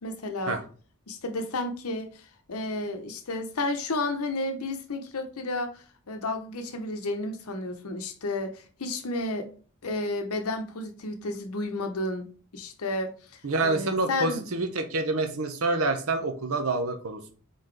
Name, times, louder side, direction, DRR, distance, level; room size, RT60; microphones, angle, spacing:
voice 1, 0.0-0.6 1.1-9.5 9.8-12.3 12.5-14.5, left 2 dB, 85° left, 0.8 m, -32 dB
voice 2, 13.4-17.3, right 3 dB, 75° right, 0.8 m, -27 dB
4.1 x 3.9 x 3.2 m
head